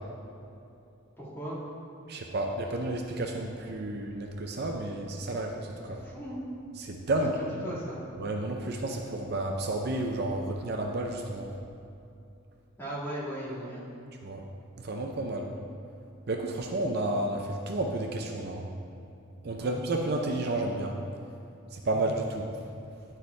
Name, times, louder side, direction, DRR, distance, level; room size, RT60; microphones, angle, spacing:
voice 1, 1.2-1.6 6.0-6.4 7.4-8.0 12.8-13.9 19.6-19.7, right 1 dB, 10° left, -8 dB, 1.9 m, -37 dB
voice 2, 2.1-6.0 6.8-7.4 8.2-11.5 14.2-14.4 14.8-15.5 16.3-18.6 19.4-21.0 21.7-22.5, right 2 dB, 50° right, 2 dB, 0.5 m, -31 dB
10.0 x 4.6 x 4.6 m, 2.7 s
head